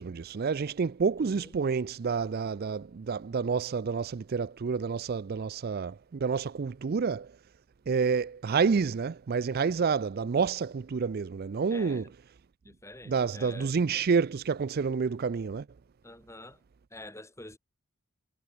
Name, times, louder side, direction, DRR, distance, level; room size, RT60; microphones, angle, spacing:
voice 1, 0.0-7.3 7.9-12.1 13.1-15.6, right 5 dB, 45° right, 0.4 m, -29 dB
voice 2, 11.7-12.1 12.7-13.7 16.0-16.6 16.9-17.6, left 2 dB, 15° left, 4.0 m, -47 dB
head